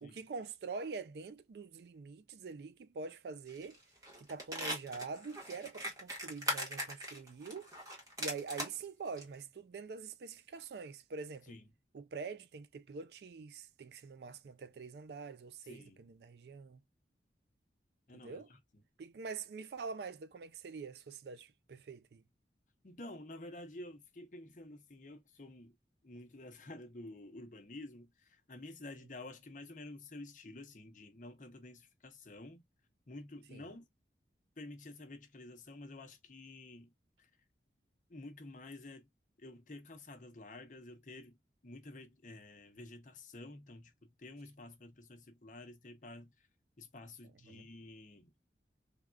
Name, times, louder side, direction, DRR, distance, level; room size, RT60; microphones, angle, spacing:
voice 1, 0.0-3.8 4.2-7.7 8.2-11.6 11.9-16.8 18.1-18.5 19.0-22.2 33.5-33.7 47.5-47.7, right 4 dB, 65° right, 0.4 m, -45 dB
sound 1, 3.5-3.8 4.0-8.8 9.2-9.3, equal, 20° right, 1.0 m, -40 dB
voice 2, 15.6-16.0 18.1-18.6 22.8-25.7 26.0-32.6 33.1-33.9 34.6-36.9 37.2-37.3 38.1-39.1 39.4-41.4 41.6-46.3 46.8-48.3, left 2 dB, 45° left, 0.7 m, -50 dB
3.5 x 2.3 x 2.3 m
head